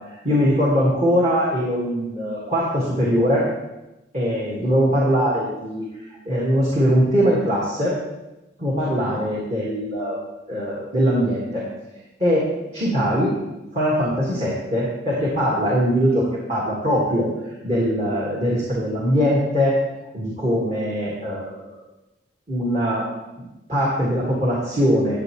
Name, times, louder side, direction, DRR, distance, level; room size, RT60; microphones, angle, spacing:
voice 1, 0.1-3.4 4.1-5.9 6.2-7.9 8.6-10.2 10.5-11.6 12.2-12.4 12.7-13.3 13.7-19.8 20.1-21.5 22.5-23.1 23.7-25.2, equal, 35° right, -6 dB, 1.8 m, -21 dB
12.0 x 7.6 x 3.1 m, 0.99 s
head